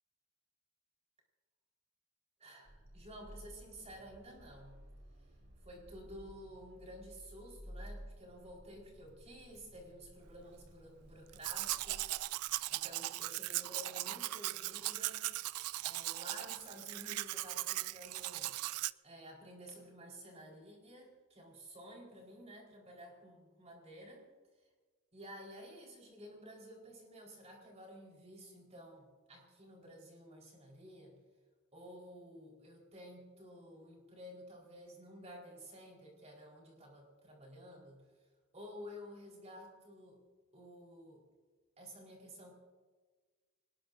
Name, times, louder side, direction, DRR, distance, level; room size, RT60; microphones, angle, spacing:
voice 1, 2.4-4.8 5.6-15.4 15.9-18.5 19.0-24.3 25.1-31.2 31.7-38.0 38.5-40.2 40.5-41.3 41.8-42.5, equal, 30° right, -1 dB, 4.5 m, -52 dB
Car / Engine starting, 2.6-12.7, equal, 50° right, 3.0 m, -55 dB
Domestic sounds home sounds, 11.3-18.9, right 17 dB, 85° right, 0.4 m, -39 dB
25.0 x 20.0 x 2.7 m, 1.4 s
head